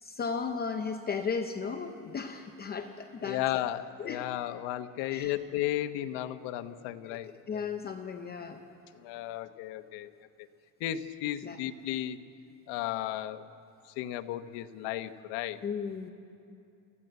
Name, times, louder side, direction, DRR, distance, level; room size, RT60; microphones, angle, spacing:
voice 1, 0.0-3.7 4.0-4.3 5.1-5.3 7.1-7.2 7.5-8.6 11.4-11.6 15.6-16.1, left 5 dB, 25° left, 5 dB, 0.7 m, -35 dB
voice 2, 3.2-7.6 8.9-10.1 10.8-12.2 12.7-13.4 14.0-15.6, left 13 dB, 80° left, 10 dB, 1.1 m, -34 dB
27.5 x 15.0 x 7.9 m, 2.6 s
cardioid pair, 170°, 42 cm